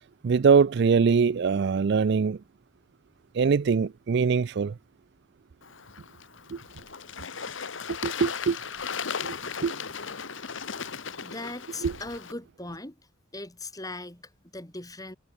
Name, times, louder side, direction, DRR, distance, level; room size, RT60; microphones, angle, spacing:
voice 1, 0.2-2.4 3.3-4.7 6.5-6.6 7.9-8.6 9.2-9.4 9.6-9.7 11.8-11.9, right 5 dB, 55° right, 0.4 m, -23 dB
Bird / Water, 5.6-12.3, left 6 dB, 65° left, 1.4 m, -37 dB
voice 2, 11.2-13.0 13.3-15.2, left 2 dB, 15° left, 2.6 m, -39 dB
head